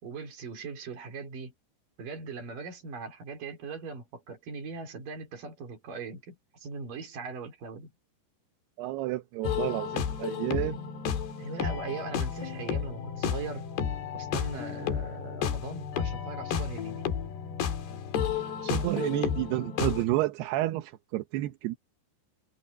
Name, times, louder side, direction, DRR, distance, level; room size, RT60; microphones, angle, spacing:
voice 1, 0.0-1.5 2.0-7.9 10.5-10.9 11.4-13.7 14.1-17.0, right 4 dB, 50° right, 5.2 m, -40 dB
voice 2, 8.8-10.8 18.6-21.8, right 16 dB, 75° right, 2.9 m, -30 dB
sound 1, 9.4-20.1, left 8 dB, 70° left, 4.1 m, -32 dB
omnidirectional pair, 5.0 m